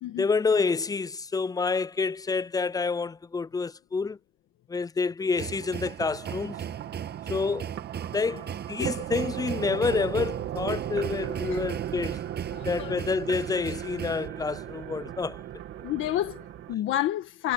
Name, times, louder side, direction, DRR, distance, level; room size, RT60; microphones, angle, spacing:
voice 1, 0.2-4.2 4.7-6.6 7.3-7.7 8.1-12.2 12.6-15.4, left 4 dB, 20° left, 0.4 m, -28 dB
sound 1, 5.3-14.3, right 8 dB, 55° right, 7.8 m, -38 dB
sound 2, 5.4-16.7, right 11 dB, 80° right, 2.6 m, -36 dB
voice 2, 12.5-13.0 15.8-17.5, left 13 dB, 90° left, 1.5 m, -30 dB
cardioid pair, 90°, 20 cm